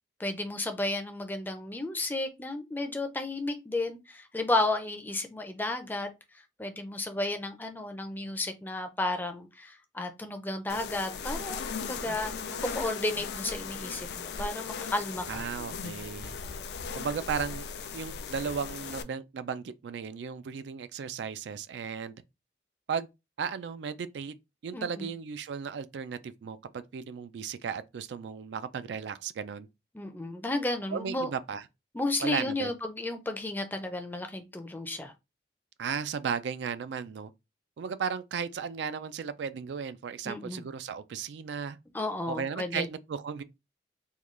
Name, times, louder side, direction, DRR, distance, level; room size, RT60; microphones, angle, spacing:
voice 1, 0.2-6.1 6.6-12.3 12.6-15.4 24.7-25.1 29.9-31.3 31.9-35.1 40.3-40.6 41.9-42.9, left 2 dB, 10° left, 0.4 m, -33 dB
sound 1, 10.7-19.0, left 5 dB, 70° left, 0.4 m, -38 dB
voice 2, 15.3-16.3 16.9-17.7 17.9-22.1 22.9-23.1 23.4-24.3 24.6-29.7 30.9-31.6 32.2-32.7 35.8-37.3 37.8-41.8 42.3-43.4, right 6 dB, 90° right, 0.3 m, -35 dB
3.6 x 2.3 x 3.1 m
head